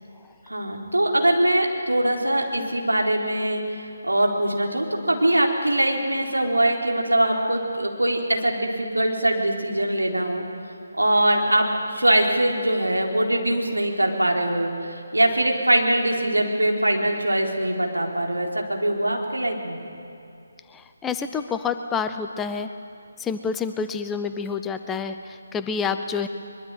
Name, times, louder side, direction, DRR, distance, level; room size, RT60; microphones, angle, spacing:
voice 1, 0.5-10.4 10.9-19.8, right 1 dB, 80° right, 1 dB, 4.1 m, -22 dB
voice 2, 20.7-22.7 23.2-26.3, left 6 dB, 10° left, 8 dB, 0.7 m, -28 dB
23.0 x 22.0 x 9.3 m, 2.6 s
figure-of-eight pair, 150°, 0 cm